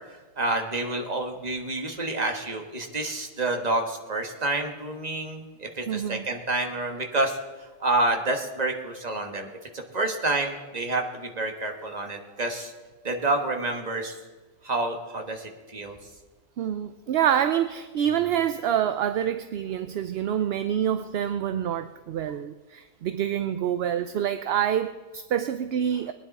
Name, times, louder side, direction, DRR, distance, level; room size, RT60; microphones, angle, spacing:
voice 1, 0.4-7.4 7.8-12.7 13.0-14.2 14.6-16.0, right 2 dB, 35° right, 3 dB, 1.5 m, -28 dB
voice 2, 5.9-6.2 16.6-26.1, right 9 dB, 65° right, 10 dB, 0.7 m, -27 dB
21.0 x 10.0 x 4.2 m, 1.3 s
omnidirectional pair, 1.3 m